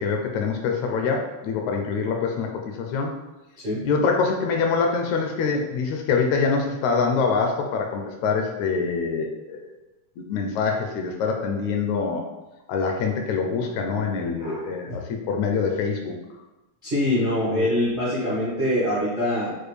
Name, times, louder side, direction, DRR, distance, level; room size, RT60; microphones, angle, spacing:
voice 1, 0.0-3.2 3.8-9.6 10.2-12.2 12.7-16.1 17.5-17.7, left 5 dB, 80° left, 2 dB, 1.8 m, -25 dB
voice 2, 14.4-15.0 16.8-19.6, left 1 dB, 85° right, -9 dB, 0.4 m, -24 dB
6.5 x 2.2 x 3.2 m, 1.0 s
omnidirectional pair, 3.4 m